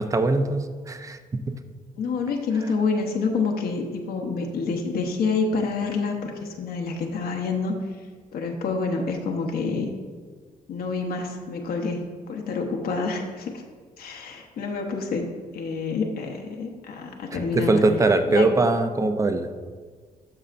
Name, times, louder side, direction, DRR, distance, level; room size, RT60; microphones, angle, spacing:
voice 1, 0.0-1.5 17.3-19.5, right 2 dB, 20° right, 8 dB, 0.5 m, -22 dB
voice 2, 2.0-6.3 6.6-7.8 8.3-9.9 10.7-13.5 14.0-15.3 15.5-17.8 18.3-18.5, left 4 dB, 75° left, 1 dB, 0.9 m, -27 dB
12.0 x 5.6 x 2.5 m, 1.6 s
cardioid pair, 110°, 16 cm